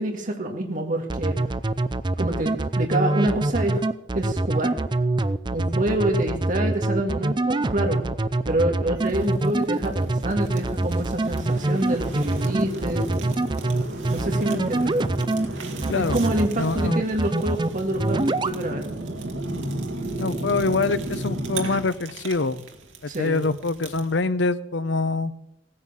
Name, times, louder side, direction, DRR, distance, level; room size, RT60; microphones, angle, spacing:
voice 1, 0.0-1.4 2.2-3.9 4.1-4.8 5.5-8.0 8.5-13.1 14.1-15.0 15.9-18.9 23.1-23.5, right 1 dB, 45° right, 2 dB, 2.1 m, -27 dB
sound 1, 1.1-15.5 15.8-16.5 16.8-17.7 18.0-18.6, right 2 dB, 25° right, 0.5 m, -24 dB
Fire, 9.0-24.1, right 1 dB, 85° right, 2.2 m, -34 dB
sound 2, 10.4-18.7, right 1 dB, 60° right, 5.2 m, -44 dB
voice 2, 15.9-16.2 16.6-17.0 20.2-22.6 23.0-25.3, left 3 dB, 70° left, 13 dB, 0.7 m, -25 dB
16.5 x 9.7 x 7.4 m, 0.87 s
head